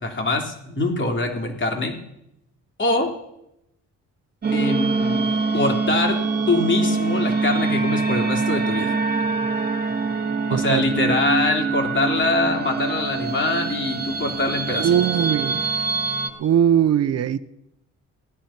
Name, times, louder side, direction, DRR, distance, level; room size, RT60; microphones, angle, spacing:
voice 1, 0.0-2.0 2.8-3.1 4.5-6.2 6.5-9.0 10.5-15.0, left 2 dB, 40° left, 3.5 m, -23 dB
sound 1, 4.4-16.3, right 4 dB, 35° right, 2.4 m, -24 dB
voice 2, 10.5-10.8 11.1-11.2 14.7-15.6 16.4-17.4, right 9 dB, 55° right, 0.7 m, -20 dB
17.5 x 10.5 x 5.9 m
cardioid pair, 90°, 30 cm